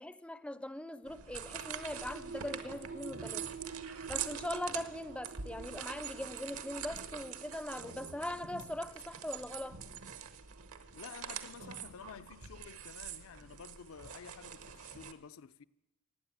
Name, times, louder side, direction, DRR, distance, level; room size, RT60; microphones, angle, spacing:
voice 1, 0.0-3.5 4.1-9.8, left 1 dB, 5° left, 0.5 m, -41 dB
sound 1, 1.0-12.3, right 5 dB, 50° right, 0.5 m, -50 dB
sound 2, 1.1-15.1, right 8 dB, 75° right, 1.1 m, -45 dB
voice 2, 10.9-15.6, left 6 dB, 65° left, 0.5 m, -51 dB
16.0 x 9.6 x 8.9 m
head